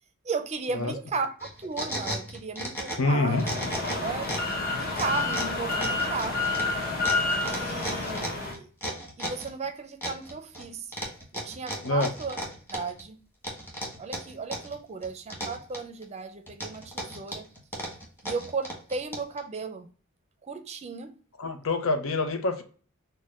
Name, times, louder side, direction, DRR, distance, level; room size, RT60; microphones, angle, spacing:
voice 1, 0.2-3.6 4.0-4.3 4.6-6.4 7.4-8.7 9.2-10.9 11.3-12.4 12.7-13.2 14.0-17.5 18.2-19.9 20.4-21.2, right 4 dB, 30° right, 0.4 m, -35 dB
sound 1, 1.4-3.1 3.4-4.6 5.0-9.5 10.0-10.6 10.9-13.0 13.4-14.8 15.0-16.0 16.5-19.4, equal, 10° left, 1.2 m, -35 dB
voice 2, 3.0-3.5 11.8-12.1 21.4-22.6, left 2 dB, 85° left, 0.7 m, -26 dB
sound 2, 3.3-8.5, left 3 dB, 50° left, 1.0 m, -29 dB
6.1 x 2.2 x 2.4 m
head